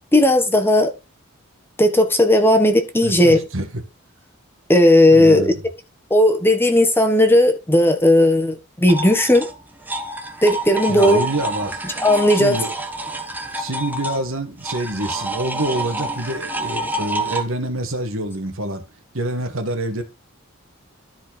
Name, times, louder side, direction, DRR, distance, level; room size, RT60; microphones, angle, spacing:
voice 1, 0.1-0.9 1.8-3.4 4.7-5.5 6.1-8.5 8.8-9.5 10.4-11.2 12.0-12.6, left 1 dB, 10° left, 1.3 m, -15 dB
voice 2, 3.0-3.8 5.1-5.5 10.9-11.8 12.3-12.7 13.5-18.8 19.1-20.0, right 1 dB, 65° right, 2.1 m, -26 dB
sound 1, 8.9-17.4, right 1 dB, 10° right, 1.3 m, -28 dB
13.5 x 4.5 x 4.5 m
head